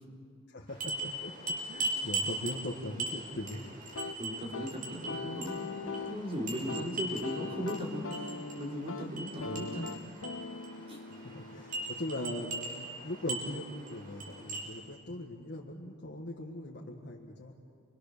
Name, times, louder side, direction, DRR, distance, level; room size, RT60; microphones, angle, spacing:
voice 1, 0.5-3.6 9.4-9.8 11.1-17.5, left 1 dB, 55° left, -2 dB, 1.8 m, -40 dB
sound 1, 0.7-14.7, right 2 dB, 45° right, 5.7 m, -40 dB
sound 2, 3.9-12.5, left 4 dB, 80° left, 0.7 m, -42 dB
voice 2, 4.2-8.3 8.6-9.9 10.9-11.0, equal, 30° right, -2 dB, 4.3 m, -37 dB
29.0 x 23.5 x 6.8 m, 2.3 s
head